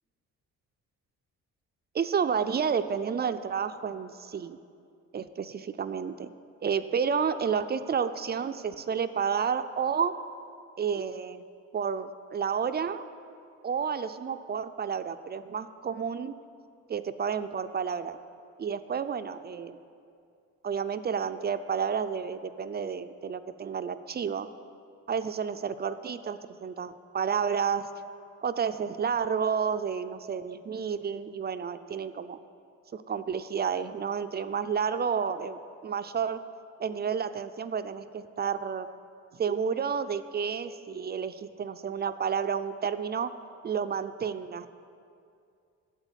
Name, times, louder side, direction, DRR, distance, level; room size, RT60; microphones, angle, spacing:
voice 1, 1.9-4.6 5.1-6.3 6.6-10.1 10.8-11.4 11.7-13.0 13.6-16.3 16.9-18.2 18.6-19.8 20.6-24.5 25.1-27.9 28.4-32.4 32.9-36.4 36.8-38.9 39.3-43.3 43.6-44.7, right 6 dB, 35° right, 11 dB, 0.4 m, -30 dB
8.1 x 7.6 x 8.2 m, 2.4 s
cardioid pair, 90°, 30 cm